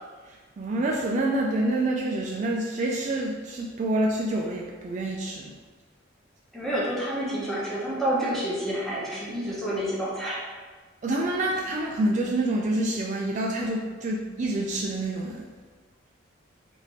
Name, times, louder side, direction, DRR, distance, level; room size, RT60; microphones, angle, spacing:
voice 1, 0.3-5.5 11.0-15.5, right 1 dB, 40° right, -1 dB, 0.3 m, -27 dB
voice 2, 6.5-10.5, right 1 dB, ahead, -7 dB, 0.8 m, -29 dB
3.4 x 2.5 x 4.1 m, 1.4 s
head